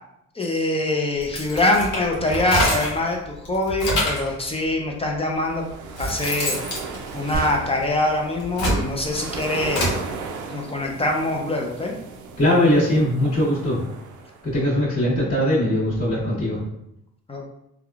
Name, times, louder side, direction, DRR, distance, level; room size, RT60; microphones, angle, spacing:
voice 1, 0.4-5.6 6.0-6.6 7.1-9.9 10.5-11.9 17.3-17.4, left 1 dB, 20° left, 0 dB, 0.5 m, -24 dB
sound 1, 1.2-3.1 3.5-4.3 5.2-5.3 5.7-7.9 8.3-10.0, equal, 80° left, 1.0 m, -26 dB
sound 2, 5.3-14.5, right 4 dB, 85° right, 0.5 m, -36 dB
sound 3, 7.3-8.1, right 2 dB, 30° right, 0.4 m, -31 dB
voice 2, 12.4-13.8 14.4-16.6, left 1 dB, 35° left, -14 dB, 1.5 m, -20 dB
3.5 x 2.2 x 2.3 m, 0.80 s
cardioid pair, 90°, 30 cm